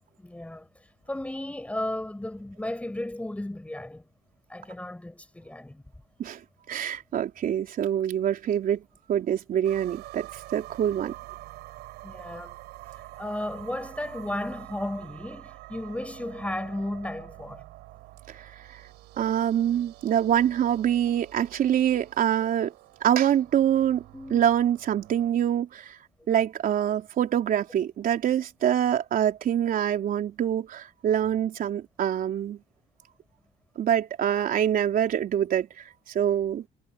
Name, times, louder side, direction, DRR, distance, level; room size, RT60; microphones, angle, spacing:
voice 1, 0.2-0.7 1.1-4.1 4.5-5.8 12.0-12.6 13.2-17.6 24.1-24.4, left 1 dB, 10° left, 6.4 m, -34 dB
voice 2, 6.7-8.8 9.1-11.1 18.3-18.8 19.2-22.7 23.0-24.0 24.3-26.0 26.3-32.6 33.8-36.6, right 10 dB, 55° right, 4.2 m, -25 dB
sound 1, 9.6-25.3, right 18 dB, 90° right, 6.8 m, -46 dB
cardioid pair, 110°, 17 cm